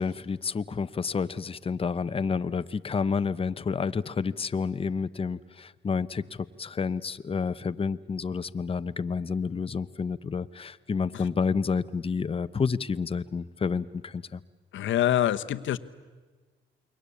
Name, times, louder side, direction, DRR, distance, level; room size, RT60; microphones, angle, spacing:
voice 1, 0.0-14.4, left 5 dB, 30° left, 13 dB, 0.8 m, -29 dB
voice 2, 14.7-15.8, left 12 dB, 75° left, 11 dB, 1.1 m, -25 dB
29.0 x 22.0 x 8.5 m, 1.4 s
cardioid pair, 90°, 20 cm